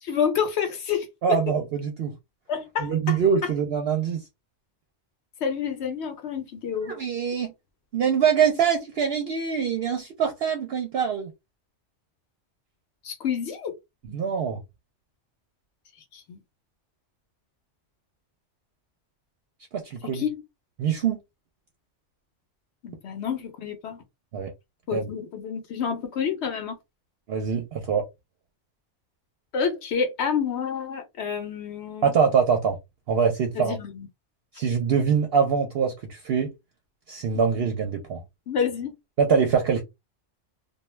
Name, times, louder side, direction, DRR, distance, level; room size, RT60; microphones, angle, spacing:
voice 1, 0.0-1.5 2.5-3.5 5.4-6.9 13.0-13.8 16.1-16.4 20.0-20.4 22.8-24.0 24.9-26.8 29.5-32.1 33.6-34.1 37.3-37.4 38.5-38.9, left 7 dB, 70° left, 0.8 m, -29 dB
voice 2, 1.2-2.1 2.8-4.2 6.9-7.5 7.9-11.3 14.1-14.6 19.7-20.2 20.8-21.2 24.3-24.5 24.9-25.1 27.3-28.0 32.0-32.8 33.1-33.8 34.5-36.5 37.1-38.2 39.2-39.8, right 6 dB, 60° right, 0.7 m, -24 dB
2.2 x 2.2 x 3.1 m
omnidirectional pair, 1.2 m